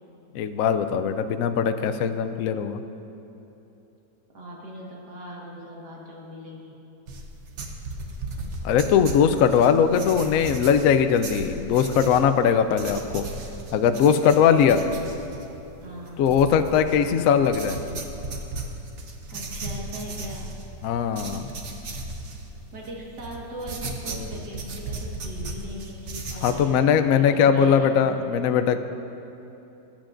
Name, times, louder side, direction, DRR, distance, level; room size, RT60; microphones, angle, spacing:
voice 1, 0.3-2.8 8.6-13.2 13.7-14.8 16.2-17.8 20.8-21.5 26.4-28.8, left 7 dB, 75° left, 9 dB, 0.7 m, -20 dB
voice 2, 4.3-6.8 15.8-16.3 19.3-20.5 22.7-26.9 27.1-27.9, equal, 70° right, -4 dB, 2.2 m, -39 dB
sound 1, 7.1-26.7, right 2 dB, 50° right, 1.0 m, -36 dB
20.5 x 9.0 x 2.5 m, 3.0 s
omnidirectional pair, 1.9 m